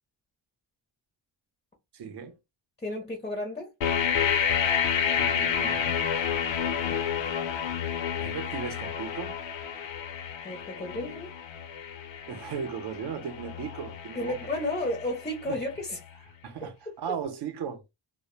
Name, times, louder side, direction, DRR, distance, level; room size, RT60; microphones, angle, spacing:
voice 1, 1.9-2.3 5.2-5.9 8.2-9.4 12.3-14.5 15.5-15.6 16.4-17.8, right 7 dB, 65° right, 0.6 m, -36 dB
voice 2, 2.8-3.7 6.6-7.0 10.4-11.3 14.2-16.0 16.6-16.7, left 1 dB, 15° left, 0.4 m, -33 dB
sound 1, 3.8-15.6, left 8 dB, 85° left, 0.6 m, -30 dB
2.1 x 2.0 x 2.9 m
wide cardioid pair, 165°, 44 cm